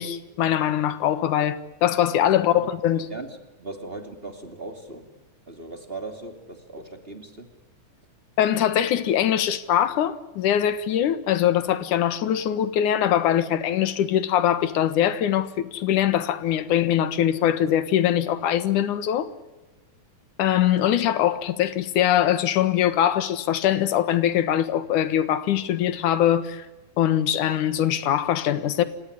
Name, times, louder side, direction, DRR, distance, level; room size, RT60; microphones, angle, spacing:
voice 1, 0.0-3.1 8.4-19.3 20.4-26.7 27.0-28.8, left 11 dB, 90° left, 2.9 m, -22 dB
voice 2, 3.1-5.1 5.5-7.5, right 2 dB, 20° right, 2.6 m, -38 dB
29.0 x 17.5 x 9.8 m
omnidirectional pair, 3.4 m